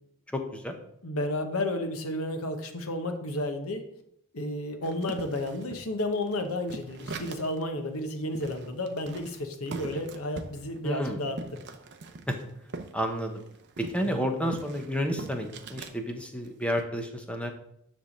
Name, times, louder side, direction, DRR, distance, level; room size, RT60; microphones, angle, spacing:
voice 1, 0.3-0.7 10.8-11.2 12.3-12.4 12.9-13.3 13.8-17.5, equal, 5° left, 4 dB, 0.9 m, -30 dB
voice 2, 1.0-3.8 4.3-11.6 14.0-14.3, left 1 dB, 70° left, 6 dB, 1.1 m, -32 dB
sound 1, 4.8-7.6 8.0-8.1 8.4-12.9 13.2-16.0 16.4-16.8, right 3 dB, 50° right, 0.7 m, -41 dB
10.0 x 3.5 x 6.5 m, 0.76 s
head